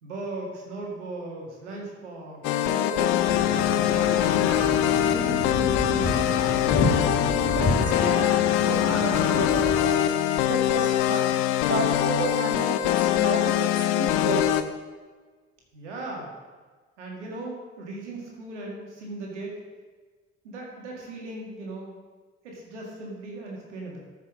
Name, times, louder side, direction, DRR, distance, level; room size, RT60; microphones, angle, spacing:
voice 1, 0.0-6.2 15.7-16.3 17.0-19.5 20.4-21.9 22.4-24.0, right 2 dB, 80° right, -2 dB, 1.9 m, -37 dB
sound 1, 2.4-14.6, left 12 dB, 65° left, 0.7 m, -23 dB
sound 2, 3.2-9.8, left 2 dB, 40° left, 2.2 m, -28 dB
voice 2, 7.5-8.3 8.6-10.0 10.4-11.4 11.7-14.6, right 4 dB, 35° right, 1 dB, 2.3 m, -32 dB
14.5 x 5.7 x 6.2 m, 1.4 s
figure-of-eight pair, 40°, 35 cm